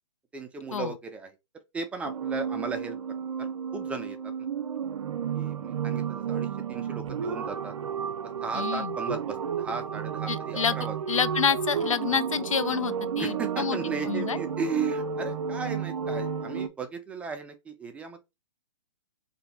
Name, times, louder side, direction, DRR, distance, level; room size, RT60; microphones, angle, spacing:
voice 1, 0.3-1.3 1.7-3.0 3.4-4.3 5.3-7.7 8.4-10.9 13.2-18.2, right 4 dB, 10° right, 0.3 m, -36 dB
sound 1, 2.0-16.7, right 7 dB, 75° right, 0.4 m, -32 dB
voice 2, 8.5-9.0 10.3-10.8 11.1-13.8 14.0-14.4, left 7 dB, 85° left, 0.4 m, -28 dB
2.6 x 2.2 x 3.9 m
hypercardioid pair, 125°, 16 cm